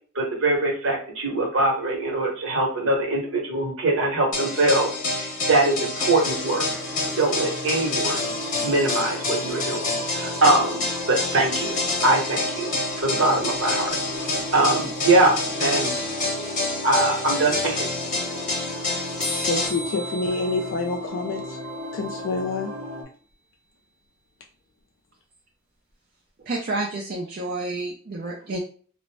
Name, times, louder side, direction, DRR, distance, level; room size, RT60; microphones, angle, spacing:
voice 1, 0.1-6.7 7.2-8.3 8.6-12.7 13.0-17.9 18.3-18.4, right 2 dB, 60° right, 0 dB, 0.9 m, -23 dB
sound 1, 4.3-19.7, left 2 dB, 35° left, 0.7 m, -28 dB
sound 2, 6.2-23.0, equal, 85° right, 0.9 m, -36 dB
sound 3, 19.2-22.3, equal, ahead, 0.7 m, -37 dB
voice 2, 19.5-21.4 21.9-22.7, left 3 dB, 60° left, 2 dB, 0.3 m, -27 dB
voice 3, 26.5-28.6, right 2 dB, 45° right, 0 dB, 0.4 m, -29 dB
2.4 x 2.0 x 3.2 m, 0.43 s
head